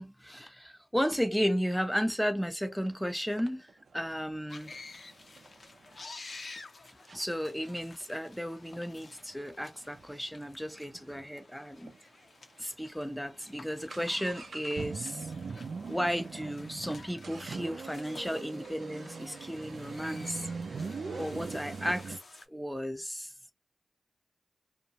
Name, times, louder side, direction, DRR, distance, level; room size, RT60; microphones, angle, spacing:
voice 1, 0.0-4.8 7.1-11.9 12.6-15.3 15.9-20.5 21.2-22.2 22.5-23.3, equal, 5° left, 0.6 m, -34 dB
sound 1, 2.8-2.9 3.4-6.0 6.6-6.7 7.1-7.3 7.6-11.3 11.6-11.7 11.9-12.0 12.6-12.7 13.0-22.2, right 4 dB, 85° right, 0.4 m, -42 dB
sound 2, 4.5-22.5, left 3 dB, 75° left, 0.5 m, -52 dB
2.4 x 2.0 x 2.8 m
cardioid pair, 40°, 0 cm